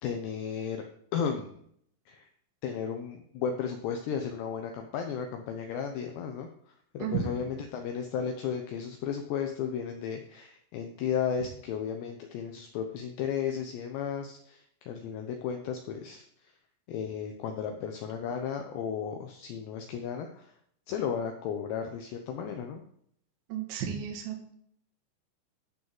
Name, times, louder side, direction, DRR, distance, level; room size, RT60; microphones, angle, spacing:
voice 1, 0.0-0.9 1.1-1.5 2.1-2.3 2.6-6.5 6.9-16.2 16.9-20.5 20.9-22.8, left 7 dB, 90° left, 4 dB, 2.4 m, -34 dB
voice 2, 23.5-24.5, right 8 dB, 65° right, 2 dB, 3.5 m, -33 dB
12.0 x 4.0 x 7.6 m, 0.67 s
omnidirectional pair, 6.0 m